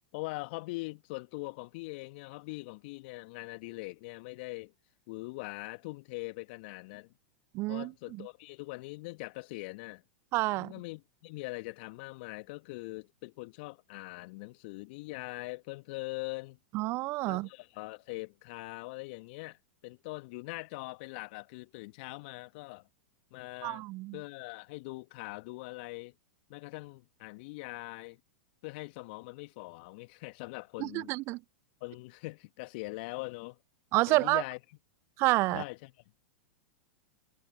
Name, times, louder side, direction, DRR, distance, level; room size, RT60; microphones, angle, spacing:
voice 1, 0.1-4.7 5.1-7.1 7.7-10.0 10.6-16.6 17.3-22.9 23.3-23.8 24.1-26.1 26.5-28.2 28.6-31.1 31.8-33.6 34.1-34.6 35.5-35.9, left 25 dB, 50° left, 2.1 m, -42 dB
voice 2, 7.5-8.3 10.3-10.7 16.7-17.5 23.6-24.2 30.8-31.4 33.9-34.4 35.2-35.6, right 21 dB, 40° right, 0.5 m, -29 dB
figure-of-eight pair, 95°, 7 cm